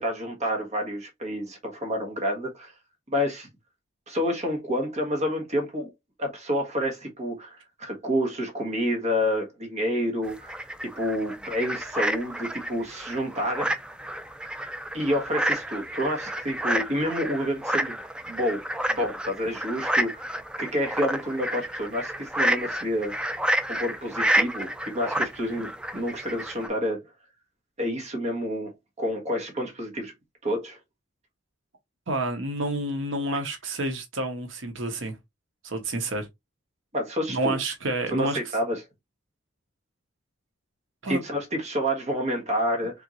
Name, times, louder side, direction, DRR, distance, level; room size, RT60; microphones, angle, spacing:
voice 1, 0.0-2.7 3.1-3.5 4.1-5.9 6.2-13.7 14.9-18.0 18.3-18.6 18.9-23.1 23.7-27.1 27.8-30.1 30.4-30.8 36.9-37.6 38.1-38.8 41.1-43.0, equal, 35° right, 1.4 m, -29 dB
sound 1, 10.2-26.7, right 1 dB, 5° right, 0.4 m, -30 dB
voice 2, 32.1-35.2 35.6-36.3 37.3-38.4 41.0-41.2, right 1 dB, 70° right, 1.0 m, -29 dB
3.8 x 3.5 x 3.0 m
head